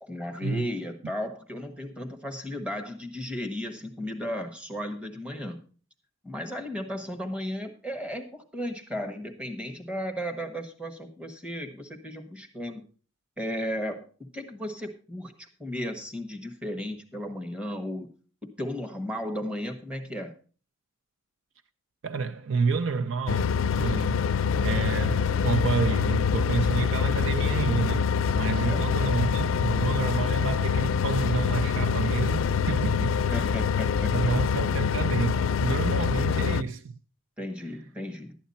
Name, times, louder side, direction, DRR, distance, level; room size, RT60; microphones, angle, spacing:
voice 1, 0.0-5.6 6.2-12.8 13.4-18.1 18.4-20.3 28.6-28.9 33.3-34.3 37.4-38.4, equal, 5° right, 1.2 m, -35 dB
voice 2, 22.0-24.3 24.6-33.2 34.1-37.0, right 5 dB, 70° right, 0.5 m, -29 dB
sound 1, 23.3-36.6, left 6 dB, 75° left, 0.4 m, -25 dB
12.0 x 9.2 x 4.1 m
head